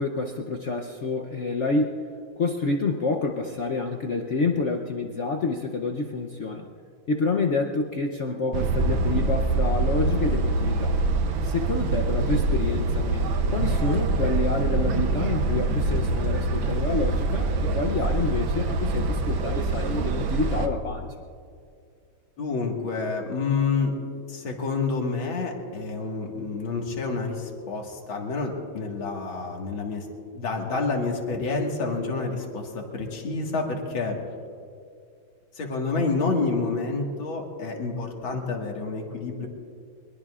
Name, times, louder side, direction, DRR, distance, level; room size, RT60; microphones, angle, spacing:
voice 1, 0.0-1.9 2.4-6.7 7.1-11.0 11.4-21.1, left 3 dB, 60° left, 2 dB, 0.7 m, -28 dB
sound 1, 8.5-20.7, right 3 dB, 90° right, 1.7 m, -25 dB
voice 2, 22.4-30.1 30.3-34.2 35.6-39.5, left 4 dB, 80° left, 1 dB, 2.6 m, -28 dB
23.0 x 22.0 x 2.4 m, 2.3 s
omnidirectional pair, 2.1 m